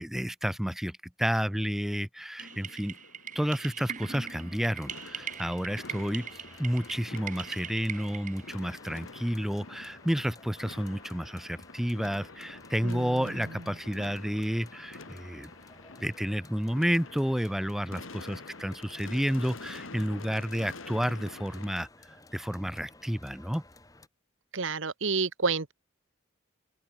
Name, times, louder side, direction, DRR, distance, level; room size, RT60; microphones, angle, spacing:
voice 1, 0.0-3.0 3.3-6.3 6.6-15.5 16.0-21.9 22.3-23.6, equal, ahead, 0.3 m, -31 dB
sound 1, 2.4-21.9, left 3 dB, 85° left, 2.3 m, -48 dB
sound 2, 2.4-8.5, right 8 dB, 40° right, 4.9 m, -41 dB
sound 3, 4.2-24.1, left 2 dB, 15° left, 3.3 m, -55 dB
voice 2, 12.8-13.6 24.5-25.7, right 4 dB, 75° right, 1.4 m, -30 dB
open air
head